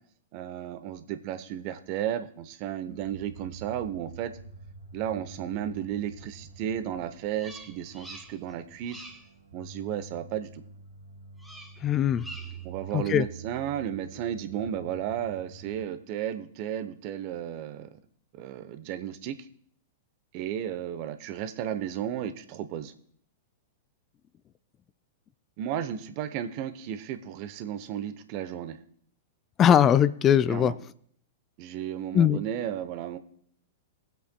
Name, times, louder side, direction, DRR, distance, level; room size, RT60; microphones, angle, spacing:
voice 1, 0.3-4.3 4.9-9.0 9.5-10.6 12.6-18.0 18.3-19.4 20.3-22.9 25.6-28.8 30.5-30.7 31.6-33.2, right 10 dB, 45° right, 11 dB, 0.8 m, -33 dB
sound 1, 3.0-15.9, right 5 dB, 90° right, 2.5 m, -47 dB
Bird vocalization bird call bird song, 7.3-8.5 8.8-9.3 11.4-11.8 12.1-12.7, right 1 dB, ahead, 1.2 m, -46 dB
voice 2, 11.8-12.3 12.9-13.2 29.6-30.7 32.1-32.4, left 9 dB, 30° left, 15 dB, 0.4 m, -20 dB
21.0 x 7.9 x 2.2 m, 0.62 s
hypercardioid pair, 105°, 0 cm